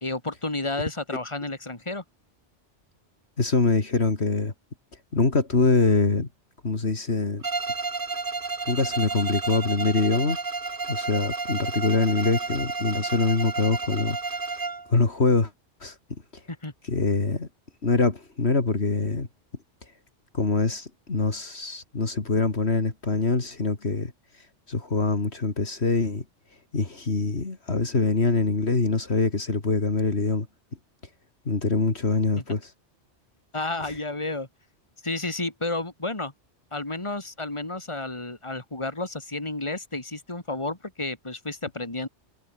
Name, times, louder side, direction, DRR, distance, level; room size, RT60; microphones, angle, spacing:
voice 1, 0.0-2.0 16.6-16.7 33.5-34.5 35.0-36.3 36.7-42.1, left 2 dB, 25° left, 3.0 m, -31 dB
voice 2, 3.4-4.5 5.1-6.3 6.6-7.4 8.7-10.4 10.9-14.2 14.9-15.5 15.8-15.9 16.9-17.5 17.8-19.3 20.3-24.1 24.7-26.2 26.7-30.5 31.5-32.7, left 3 dB, 65° left, 2.9 m, -24 dB
Bowed string instrument, 7.4-14.9, right 4 dB, 45° right, 1.9 m, -31 dB
omnidirectional pair, 1.2 m